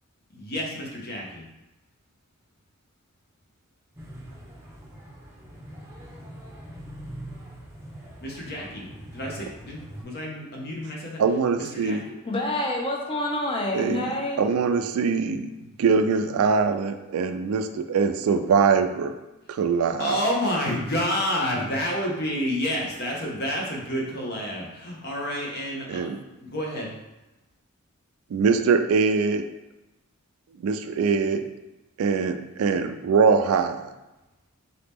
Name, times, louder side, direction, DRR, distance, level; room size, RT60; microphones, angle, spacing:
voice 1, 0.3-1.5 8.2-11.2 11.6-12.1 20.0-26.1 26.4-26.9, equal, 50° left, -2 dB, 0.9 m, -29 dB
sound 1, 4.0-10.0, right 1 dB, 15° right, 0.7 m, -43 dB
voice 2, 11.2-12.0 13.7-15.5 15.8-19.1 19.5-20.2 25.9-26.2 28.3-29.4 30.6-31.5 32.0-33.8, right 5 dB, 80° right, 9 dB, 0.3 m, -23 dB
voice 3, 12.2-14.4, left 1 dB, 25° left, 0 dB, 0.6 m, -27 dB
4.0 x 2.9 x 3.5 m, 1.0 s
head